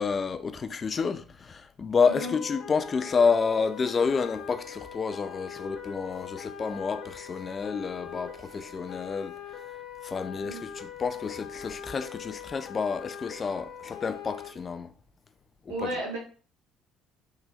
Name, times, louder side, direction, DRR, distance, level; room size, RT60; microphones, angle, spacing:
voice 1, 0.0-9.3 10.0-14.9 15.7-15.9, left 5 dB, 35° left, 0.4 m, -29 dB
sound 1, 2.0-14.5, left 8 dB, 75° left, 0.8 m, -42 dB
voice 2, 2.0-2.3 10.4-10.6 15.7-16.2, right 1 dB, 90° right, 1.5 m, -33 dB
3.7 x 3.0 x 2.4 m
supercardioid pair, 70°, 0 cm